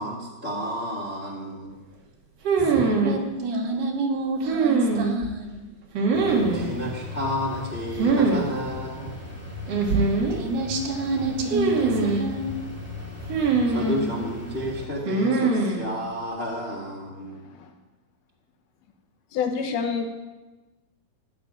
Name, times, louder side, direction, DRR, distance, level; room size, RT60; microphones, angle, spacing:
voice 1, 0.0-1.8 6.2-9.2 13.7-17.4, equal, 55° left, -3 dB, 0.6 m, -31 dB
sound 1, 2.4-3.2 4.5-5.3 5.9-6.7 8.0-8.4 8.7-8.8 9.7-10.4 11.5-12.3 13.3-14.1 15.1-15.8, right 4 dB, 45° right, 2.7 m, -22 dB
voice 2, 2.6-5.6 10.0-12.6, right 2 dB, 70° right, -1 dB, 4.3 m, -29 dB
sound 2, 6.1-14.9, left 3 dB, 10° right, 1.0 m, -38 dB
voice 3, 17.3-17.7 19.3-20.1, left 6 dB, 75° left, 6 dB, 2.8 m, -28 dB
15.0 x 6.8 x 9.4 m, 1.2 s
omnidirectional pair, 4.8 m